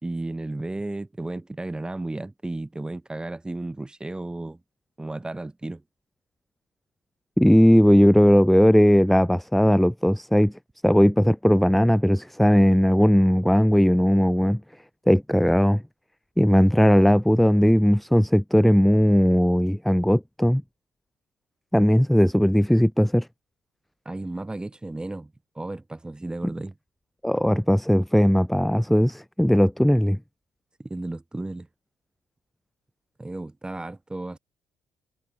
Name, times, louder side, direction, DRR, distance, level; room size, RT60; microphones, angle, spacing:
voice 1, 0.0-4.6 5.0-5.8 24.0-26.8 30.8-31.7 33.2-34.4, right 2 dB, 15° right, 4.5 m, -33 dB
voice 2, 7.4-10.5 10.8-14.6 15.1-15.8 16.4-20.6 21.7-23.3 27.2-30.2, equal, ahead, 0.9 m, -18 dB
cardioid pair, 90°, 6 cm